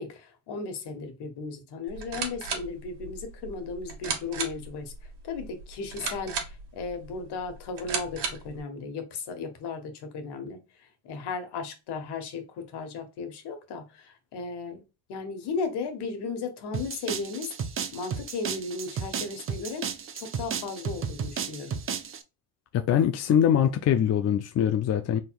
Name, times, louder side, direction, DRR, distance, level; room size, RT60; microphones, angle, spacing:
voice 1, 0.0-14.8 15.1-17.5 17.9-19.8 20.1-21.8, left 4 dB, 60° left, 1.4 m, -36 dB
sound 1, 1.9-8.6, right 6 dB, 60° right, 1.4 m, -36 dB
sound 2, 16.7-22.2, right 7 dB, 30° right, 0.7 m, -34 dB
voice 2, 22.7-25.2, left 9 dB, 35° left, 0.5 m, -23 dB
4.3 x 3.6 x 2.3 m
supercardioid pair, 80°, 45 cm